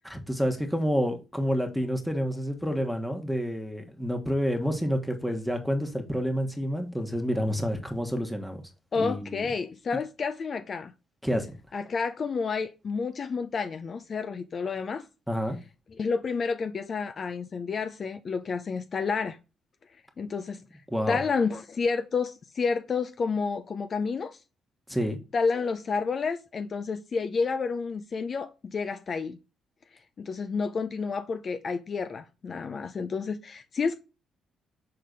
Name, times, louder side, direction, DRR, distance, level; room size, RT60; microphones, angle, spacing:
voice 1, 0.0-8.6 8.9-9.4 11.2-11.5 15.3-15.6 20.9-21.2 24.9-25.2, equal, 5° left, 1.4 m, -29 dB
voice 2, 8.9-10.9 11.7-15.0 16.0-19.4 20.2-20.6 21.1-24.4 25.3-29.4 30.2-34.0, left 5 dB, 45° left, 0.6 m, -30 dB
6.5 x 3.9 x 4.0 m
cardioid pair, 90°, 0 cm